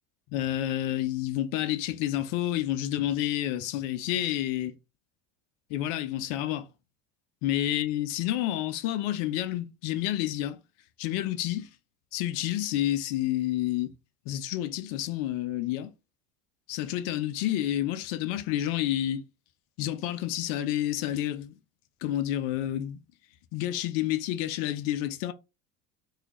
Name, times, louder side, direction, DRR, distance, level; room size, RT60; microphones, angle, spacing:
voice 1, 0.3-4.7 5.7-6.7 7.4-10.6 11.0-11.7 12.1-13.9 14.3-15.9 16.7-19.2 19.8-21.5 22.0-23.0 23.5-25.3, left 13 dB, 65° left, 0.6 m, -29 dB
3.1 x 2.3 x 3.0 m
hypercardioid pair, 85°, 45 cm